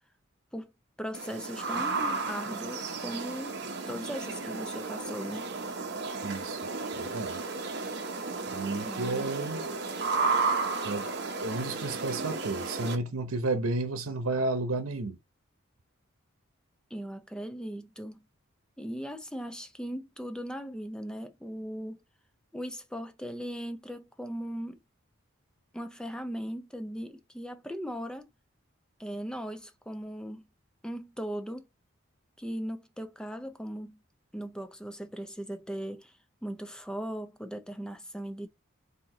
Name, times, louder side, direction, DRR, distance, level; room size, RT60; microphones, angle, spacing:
voice 1, 1.0-5.5 8.8-9.3 16.9-18.2 18.8-22.0 22.5-24.8 25.7-28.3 29.0-30.4 30.8-31.7 32.4-34.0 34.3-36.1 36.4-38.5, equal, 5° left, 0.4 m, -38 dB
sound 1, 1.1-12.9, right 4 dB, 50° right, 0.8 m, -33 dB
voice 2, 6.2-6.6 6.9-7.4 8.5-9.7 10.8-11.1 11.4-15.2, right 2 dB, 85° right, 0.8 m, -32 dB
4.4 x 2.7 x 3.8 m
head